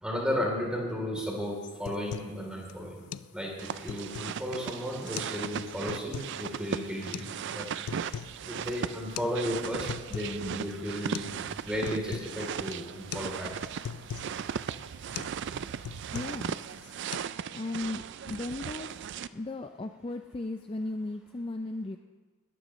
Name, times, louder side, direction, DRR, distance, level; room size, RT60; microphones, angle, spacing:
voice 1, 0.0-3.1 3.3-7.7 8.5-11.4 11.7-13.5, equal, 5° right, -2 dB, 3.2 m, -34 dB
sound 1, 1.2-1.3 1.6-2.4 2.7-2.8 3.1-3.3 3.7-4.4 5.0-5.4 5.7-6.3 7.1-7.3 7.7-8.4 8.7-8.8 9.2-9.3 9.6-10.4 10.7-10.8 11.1-11.4 11.6-12.3 12.7-12.9 13.1-13.3 13.6-14.3 14.7-14.9 15.1-15.4 15.7-16.5 16.8-17.2, left 8 dB, 90° left, 0.4 m, -40 dB
sound 2, 3.6-19.3, right 7 dB, 50° right, 0.3 m, -37 dB
voice 2, 16.1-16.6 17.5-18.9 19.3-22.0, left 2 dB, 25° left, 7 dB, 0.4 m, -36 dB
20.5 x 14.0 x 3.1 m, 1.5 s
head